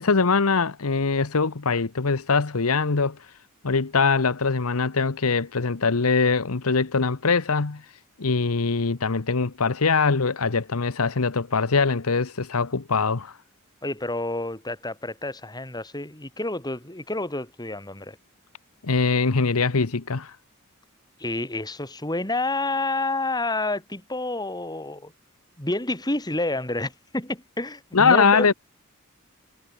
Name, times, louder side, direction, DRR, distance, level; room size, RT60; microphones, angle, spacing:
voice 1, 0.0-3.2 3.6-7.8 8.2-13.3 18.8-20.4 27.9-28.5, left 4 dB, 80° left, 1.0 m, -22 dB
voice 2, 13.8-18.2 21.2-25.1 25.6-28.5, left 2 dB, 20° left, 4.4 m, -29 dB
head